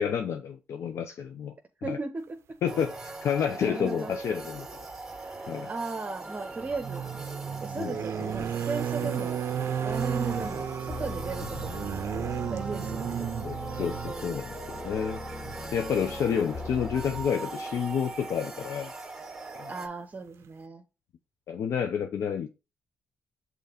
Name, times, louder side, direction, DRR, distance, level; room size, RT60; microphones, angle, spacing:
voice 1, 0.0-1.5 1.9-2.0 2.6-2.9 3.2-4.7 5.5-5.7 7.8-8.3 9.0-9.1 13.4-15.2 15.7-18.9 19.6-19.7 21.5-22.5, left 7 dB, 70° left, 0.6 m, -30 dB
voice 2, 1.8-2.6 3.6-4.2 5.7-7.0 7.6-9.5 9.8-13.2 13.7-14.4 19.7-20.8, right 3 dB, 35° right, 0.9 m, -37 dB
sound 1, 2.7-19.9, right 3 dB, 5° right, 2.1 m, -40 dB
sound 2, 4.3-4.4 6.6-14.2 15.4-15.6 15.9-16.1, right 9 dB, 65° right, 0.5 m, -33 dB
sound 3, 9.9-17.3, left 4 dB, 50° left, 1.4 m, -41 dB
5.7 x 3.9 x 5.0 m
supercardioid pair, 60°, 5 cm